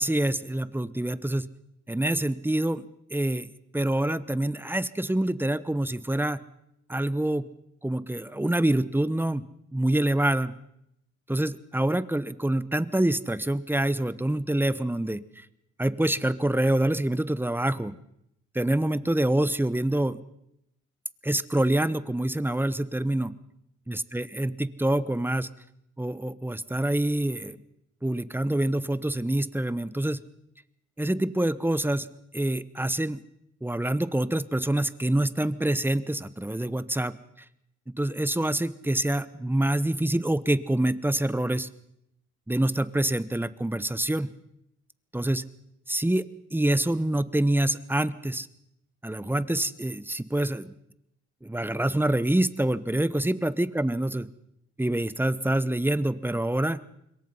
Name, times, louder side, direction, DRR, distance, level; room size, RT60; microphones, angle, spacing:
voice 1, 0.0-1.5 1.9-2.8 3.1-3.5 3.7-6.4 6.9-7.5 7.8-9.4 9.7-10.5 11.3-15.5 15.8-18.0 18.5-20.2 21.2-23.3 23.9-25.5 26.0-27.6 28.0-30.2 31.0-32.1 32.3-33.2 33.6-37.1 38.0-41.7 42.5-44.3 45.1-45.4 45.9-46.2 46.5-48.5 49.0-50.7 51.4-54.3 54.8-56.8, right 1 dB, 5° right, 16 dB, 1.0 m, -26 dB
26.0 x 22.5 x 5.6 m, 0.78 s
cardioid pair, 90°, 30 cm